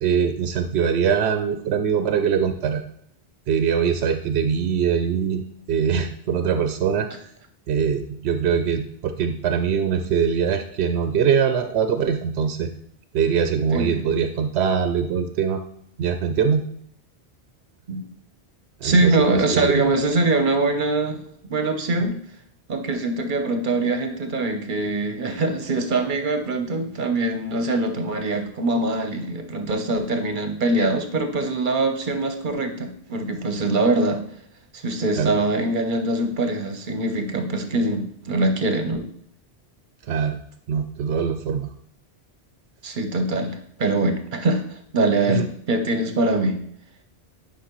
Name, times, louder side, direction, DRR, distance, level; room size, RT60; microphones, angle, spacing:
voice 1, 0.0-2.8 3.5-5.4 5.7-7.3 7.7-12.7 13.1-15.6 16.0-16.6 18.8-19.9 35.2-35.3 40.1-40.4 40.7-41.7 45.3-45.5, right 7 dB, 80° right, 8 dB, 0.8 m, -22 dB
voice 2, 18.8-21.2 21.5-22.1 22.7-34.2 34.7-39.0 42.8-46.6, right 2 dB, 55° right, 6 dB, 0.9 m, -23 dB
10.0 x 5.3 x 3.0 m, 0.69 s
omnidirectional pair, 1.1 m